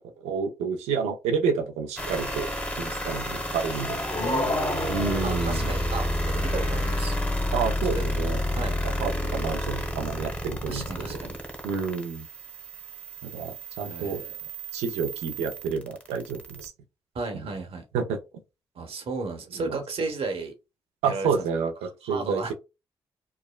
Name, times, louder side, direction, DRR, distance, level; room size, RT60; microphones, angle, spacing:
voice 1, 0.2-2.5 2.8-4.0 4.9-5.7 7.5-8.4 8.8-11.2 11.6-12.2 13.2-14.2 14.7-16.7 17.3-17.5 17.9-18.2 19.6-19.8 21.0-22.5, right 6 dB, 90° right, 0.5 m, -29 dB
sound 1, 2.0-16.7, equal, 15° left, 1.0 m, -30 dB
sound 2, 3.5-6.4, left 2 dB, 60° left, 1.3 m, -32 dB
voice 2, 4.1-7.2 7.5-7.6 7.9-8.1 8.5-8.8 10.7-11.4 13.8-14.4 17.1-17.8 18.8-20.5 21.0-21.4 22.0-22.5, right 3 dB, 65° right, 0.9 m, -34 dB
3.2 x 2.1 x 2.2 m
supercardioid pair, 45°, 11 cm